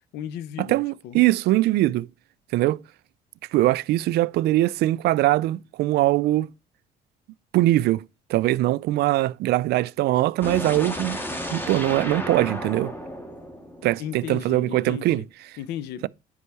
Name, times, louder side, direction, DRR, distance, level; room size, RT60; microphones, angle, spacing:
voice 1, 0.1-1.2 13.8-15.3 15.6-16.1, left 10 dB, 80° left, 0.7 m, -35 dB
voice 2, 0.7-2.1 2.5-2.8 3.5-6.5 7.5-8.0 8.3-11.2 11.5-12.9 13.8-15.2, right 16 dB, 75° right, 0.4 m, -22 dB
sound 1, 10.4-14.4, left 1 dB, 10° left, 1.7 m, -33 dB
9.8 x 5.5 x 4.8 m
cardioid pair, 110°, 17 cm